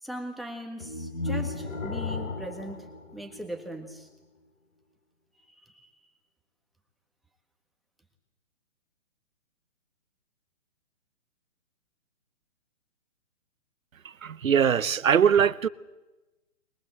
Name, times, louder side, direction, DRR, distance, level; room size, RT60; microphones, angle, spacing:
voice 1, 0.0-4.1 5.5-5.9, equal, ahead, 1.7 m, -40 dB
sound 1, 0.8-4.0, left 3 dB, 85° left, 3.3 m, -35 dB
voice 2, 14.0-15.7, right 8 dB, 90° right, 0.9 m, -22 dB
22.5 x 21.0 x 7.8 m
hypercardioid pair, 145°, 39 cm